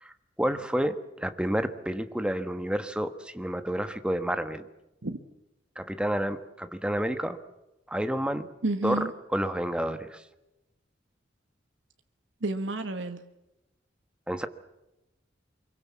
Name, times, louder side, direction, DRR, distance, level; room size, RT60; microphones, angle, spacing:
voice 1, 0.4-4.7 5.8-7.4 7.9-8.5 8.8-9.0 9.3-10.2 14.3-14.5, equal, 5° right, 9 dB, 1.3 m, -29 dB
voice 2, 8.6-9.1 12.4-13.2, right 2 dB, 80° right, 7 dB, 1.5 m, -30 dB
25.0 x 23.0 x 7.4 m, 0.92 s
head